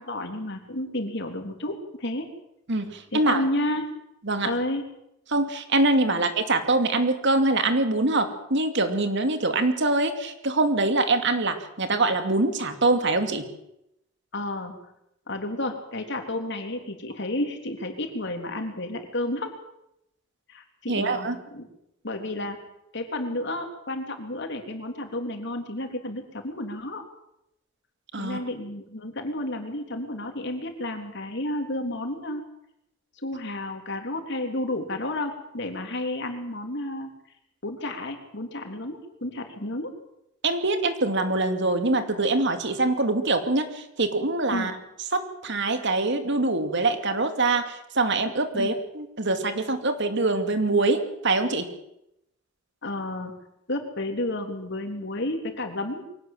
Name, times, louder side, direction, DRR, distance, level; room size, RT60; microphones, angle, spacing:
voice 1, 0.0-2.3 3.1-3.9 4.4-4.9 6.1-6.2 14.3-14.7 15.3-19.5 20.5-21.7 22.0-22.6 22.9-27.0 28.2-32.4 33.2-37.1 37.6-39.9 44.5-44.7 48.5-48.7 52.8-53.3 53.7-56.0, left 1 dB, 60° left, 4 dB, 3.6 m, -31 dB
voice 2, 2.7-3.4 4.2-4.5 5.3-13.5 20.9-21.4 28.1-28.4 40.4-44.7 45.1-51.7, right 2 dB, 65° right, 7 dB, 2.6 m, -24 dB
23.5 x 18.0 x 7.6 m, 0.81 s
head